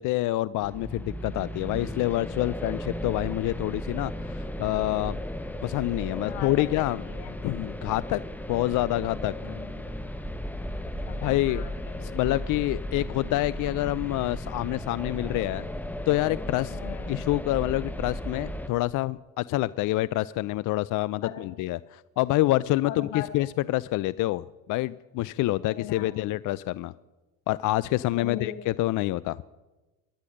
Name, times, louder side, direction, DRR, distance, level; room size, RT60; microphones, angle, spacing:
voice 1, 0.0-5.2 5.6-7.0 7.4-8.2 8.5-9.3 11.2-11.6 12.0-15.7 16.1-16.8 17.1-26.9 27.5-29.4, left 17 dB, 55° left, 20 dB, 0.4 m, -27 dB
sound 1, 0.6-18.7, equal, 5° left, 1.1 m, -35 dB
voice 2, 1.4-1.9 6.1-7.3 9.4-9.8 11.1-12.2 16.7-17.2 21.2-21.5 22.8-23.3 25.6-26.2 28.0-28.5, left 11 dB, 80° left, 8 dB, 1.6 m, -40 dB
14.0 x 10.0 x 6.5 m, 1.1 s
hypercardioid pair, 65°, 39 cm